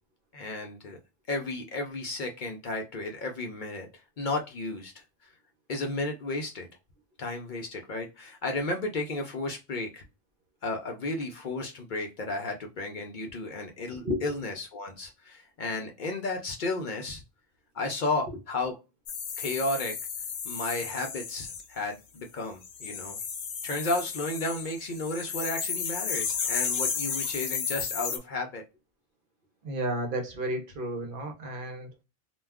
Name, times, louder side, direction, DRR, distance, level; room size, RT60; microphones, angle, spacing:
voice 1, 0.3-1.0 1.3-3.9 4.2-5.0 5.7-6.7 7.2-10.0 10.6-17.2 17.7-18.7 19.4-19.9 20.4-23.2 23.6-28.6, left 2 dB, 55° left, 0.6 m, -33 dB
sound 1, 19.1-21.6 22.6-28.2, left 6 dB, 90° left, 0.9 m, -33 dB
voice 2, 29.6-31.9, equal, 60° right, 0.8 m, -32 dB
2.3 x 2.2 x 3.3 m
omnidirectional pair, 1.1 m